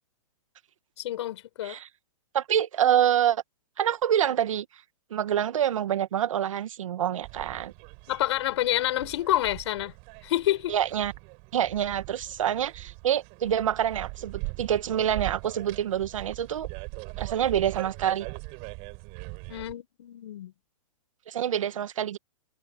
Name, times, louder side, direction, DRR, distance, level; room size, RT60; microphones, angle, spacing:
voice 1, 1.0-1.8 8.1-9.9 10.2-10.8 19.5-20.5, left 14 dB, 55° left, 4.6 m, -28 dB
voice 2, 2.3-3.4 3.8-4.7 5.1-7.7 10.7-11.1 11.5-16.7 17.2-18.3 21.3-22.2, right 10 dB, 70° right, 1.8 m, -26 dB
sound 1, 7.2-19.7, right 32 dB, 35° right, 5.7 m, -41 dB
hypercardioid pair, 145°, 17 cm